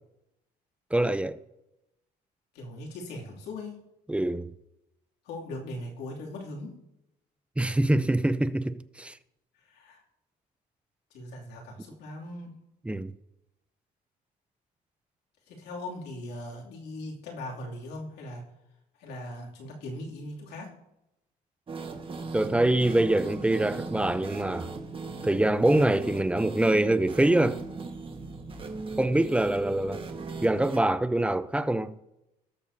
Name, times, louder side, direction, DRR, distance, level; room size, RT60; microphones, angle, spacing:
voice 1, 0.9-1.4 4.1-4.5 7.6-9.2 12.9-13.1 22.3-24.7 25.2-27.6 29.0-30.0 30.4-31.9, right 1 dB, 5° right, 0.5 m, -24 dB
voice 2, 2.5-3.8 5.2-6.7 9.7-10.0 11.1-12.6 15.5-18.4 19.0-20.7 28.7-29.0, left 1 dB, 80° left, 2.7 m, -40 dB
sound 1, 21.7-30.8, right 4 dB, 30° right, 1.4 m, -38 dB
18.5 x 6.8 x 2.7 m
cardioid pair, 110°, 17 cm